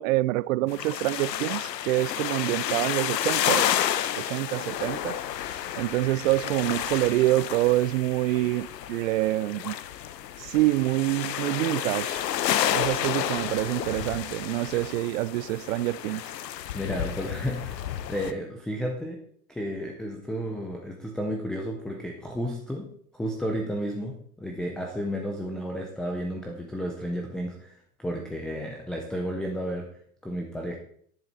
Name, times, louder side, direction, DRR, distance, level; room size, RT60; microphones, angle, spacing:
voice 1, 0.0-3.7 4.2-5.2 5.8-9.8 10.4-12.2 12.7-16.2, right 17 dB, 55° right, 0.5 m, -26 dB
sound 1, 0.7-18.3, left 11 dB, 80° left, 1.0 m, -31 dB
voice 2, 16.7-19.2 19.5-22.9 23.1-29.9 30.2-30.8, equal, ahead, 0.4 m, -32 dB
10.5 x 10.5 x 4.1 m
hypercardioid pair, 130°, 49 cm